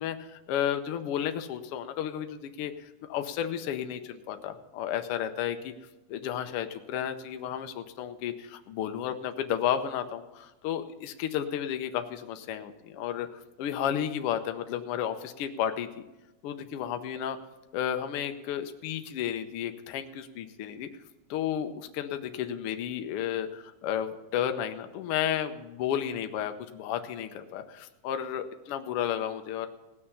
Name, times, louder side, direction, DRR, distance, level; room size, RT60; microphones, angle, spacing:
voice 1, 0.0-5.7 6.1-13.3 13.6-15.9 16.4-17.4 17.7-20.9 21.3-29.7, left 10 dB, 85° left, 7 dB, 1.2 m, -32 dB
18.5 x 6.7 x 5.6 m, 1.0 s
omnidirectional pair, 3.6 m